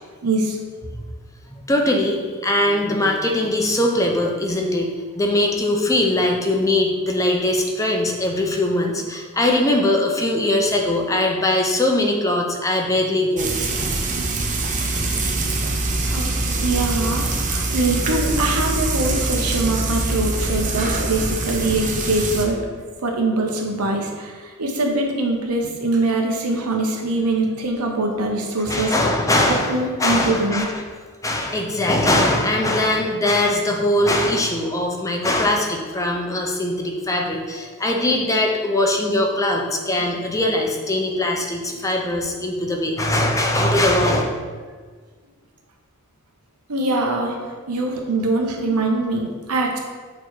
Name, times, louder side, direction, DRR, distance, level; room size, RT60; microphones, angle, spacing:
voice 1, 0.2-0.6 16.0-22.6 23.0-24.3 24.6-28.9 29.7-30.7 46.7-47.3 47.7-49.8, right 2 dB, 85° right, 1 dB, 1.0 m, -23 dB
voice 2, 1.7-13.5 28.6-30.8 31.2-44.2, left 1 dB, 15° left, 0 dB, 0.6 m, -21 dB
Frying (food), 13.4-22.5, right 2 dB, 35° right, 0.7 m, -23 dB
6.7 x 3.1 x 4.7 m, 1.5 s
head